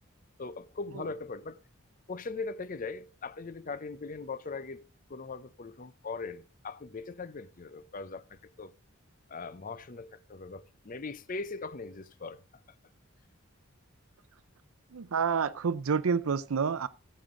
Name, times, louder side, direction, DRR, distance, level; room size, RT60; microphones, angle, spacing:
voice 1, 0.4-1.6 2.1-8.7 9.3-12.4, left 4 dB, 40° left, 0.6 m, -40 dB
voice 2, 14.9-16.9, right 6 dB, 85° right, 0.5 m, -28 dB
14.0 x 7.7 x 3.7 m
head